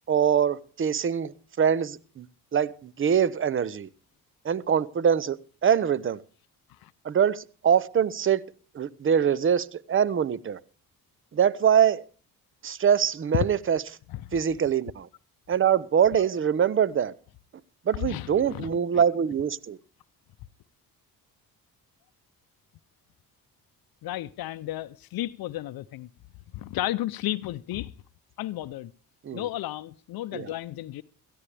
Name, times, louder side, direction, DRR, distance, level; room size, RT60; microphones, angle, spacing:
voice 1, 0.1-1.3 1.6-2.3 2.5-3.9 4.4-6.2 7.0-8.4 8.7-10.6 11.3-12.0 12.6-13.8 14.3-15.1 15.5-17.1 17.9-19.8 29.2-29.4 30.3-30.5, right 8 dB, 35° right, 0.7 m, -24 dB
voice 2, 18.0-19.0 24.0-26.1 26.5-27.9 28.4-28.9 29.3-31.0, left 14 dB, 75° left, 0.6 m, -33 dB
17.0 x 14.0 x 3.3 m
cardioid pair, 75°, 36 cm